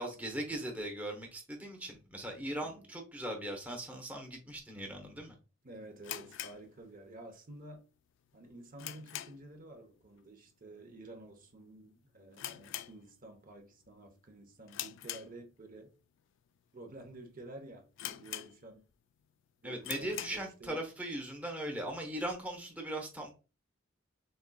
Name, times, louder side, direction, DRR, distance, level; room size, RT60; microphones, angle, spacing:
voice 1, 0.0-5.3 19.6-23.3, right 1 dB, 10° right, 0.9 m, -39 dB
voice 2, 5.6-7.8 8.3-15.9 16.7-18.8 19.6-20.8, right 2 dB, 45° right, 0.8 m, -51 dB
sound 1, 6.0-7.4 7.6-7.7 8.3-9.6 9.9-10.2 10.5-10.6 11.3-11.5 11.8-11.9 12.3-13.5 13.8-14.1 14.7-15.8 16.4-16.5 17.1-17.2 17.4-17.5 18.0-18.9 19.3-19.4 19.8-20.5, left 13 dB, 65° left, 0.3 m, -43 dB
5.3 x 3.5 x 2.2 m
head